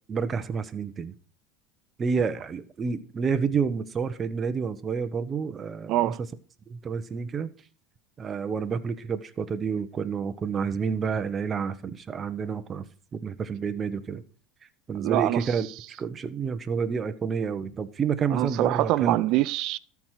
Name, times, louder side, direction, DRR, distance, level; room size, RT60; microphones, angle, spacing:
voice 1, 0.1-1.1 2.0-6.1 6.7-7.5 8.2-12.8 13.1-14.2 14.9-15.7 16.0-19.2, right 6 dB, 30° right, 1.0 m, -29 dB
voice 2, 5.9-6.2 15.0-15.5 18.3-19.8, right 16 dB, 60° right, 0.5 m, -24 dB
13.0 x 4.8 x 5.8 m
supercardioid pair, 105°, 0 cm